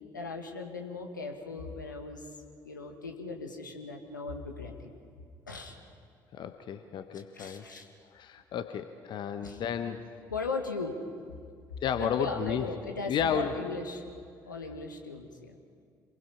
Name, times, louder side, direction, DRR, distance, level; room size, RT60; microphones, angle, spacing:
voice 1, 0.1-2.2 2.6-4.9 5.5-5.8 7.3-7.8 9.4-9.6 10.3-11.0 12.0-14.0 14.5-15.5, left 3 dB, 85° left, 4 dB, 1.7 m, -38 dB
voice 2, 6.3-7.6 8.1-10.1 11.8-12.6 13.1-13.6, left 8 dB, 50° left, 9 dB, 1.1 m, -32 dB
27.0 x 21.5 x 5.8 m, 2.2 s
figure-of-eight pair, 50°, 10 cm